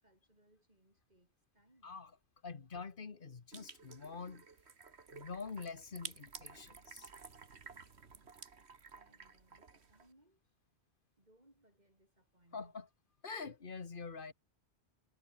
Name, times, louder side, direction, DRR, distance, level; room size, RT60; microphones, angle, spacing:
voice 1, 0.0-2.0 8.9-10.5 11.2-12.9, right 1 dB, 40° right, 8.0 m, -69 dB
voice 2, 2.4-4.4 5.1-7.1 12.5-12.9 13.2-14.3, left 5 dB, 50° left, 1.5 m, -46 dB
sound 1, 3.5-10.1, right 5 dB, 75° right, 2.1 m, -53 dB
omnidirectional pair, 1.1 m